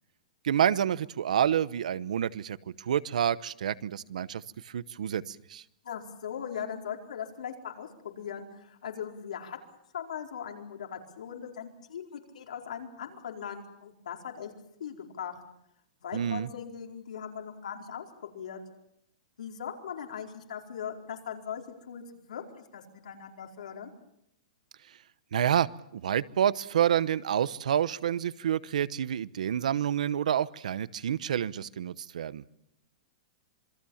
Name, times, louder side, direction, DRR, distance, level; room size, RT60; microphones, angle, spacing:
voice 1, 0.4-5.6 16.1-16.5 25.3-25.7 25.9-32.4, right 9 dB, 80° right, 18 dB, 0.9 m, -28 dB
voice 2, 5.8-9.6 9.9-14.5 14.8-15.4 16.0-18.6 19.4-23.9, left 8 dB, 90° left, 2 dB, 4.5 m, -39 dB
27.0 x 22.0 x 7.2 m, 0.78 s
supercardioid pair, 175°, 4 cm